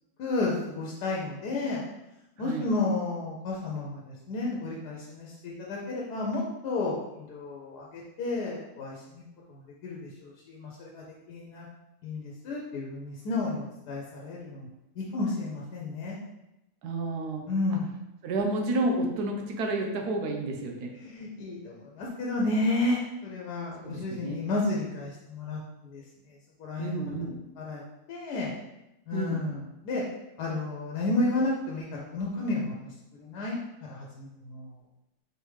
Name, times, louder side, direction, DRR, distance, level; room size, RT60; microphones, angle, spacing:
voice 1, 0.2-1.8 2.4-9.2 9.5-11.7 12.0-14.7 15.0-16.2 17.5-17.9 21.0-25.6 25.9-26.0 26.6-27.0 27.6-27.8 28.1-28.5 29.1-30.0 30.4-31.9 32.1-32.9 33.2-33.6 33.9-34.7, left 2 dB, 90° left, -3 dB, 1.3 m, -32 dB
voice 2, 16.8-17.4 17.7-17.8 18.2-20.9 23.8-24.4 26.8-27.4 29.1-29.4, right 2 dB, 85° right, 2 dB, 1.3 m, -30 dB
4.4 x 3.4 x 3.2 m, 0.91 s
omnidirectional pair, 1.7 m